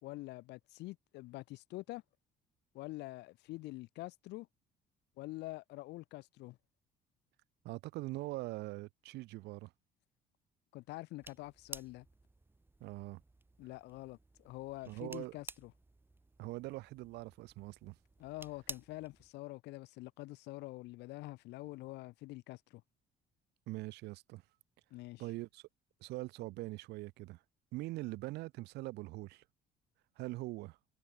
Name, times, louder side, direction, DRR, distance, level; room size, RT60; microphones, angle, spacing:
voice 1, 0.0-2.0 2.7-4.5 5.2-6.6 10.7-12.0 13.6-15.7 18.2-22.8 24.9-25.2, left 19 dB, 85° left, 3.2 m, -46 dB
voice 2, 7.6-9.7 12.8-13.2 14.9-15.3 16.4-18.0 23.7-24.4 25.2-25.6 26.0-27.4 27.7-29.4 30.2-30.8, right 19 dB, 85° right, 1.2 m, -42 dB
sound 1, 11.2-19.3, right 2 dB, 10° right, 1.2 m, -53 dB
cardioid pair, 110°, 17 cm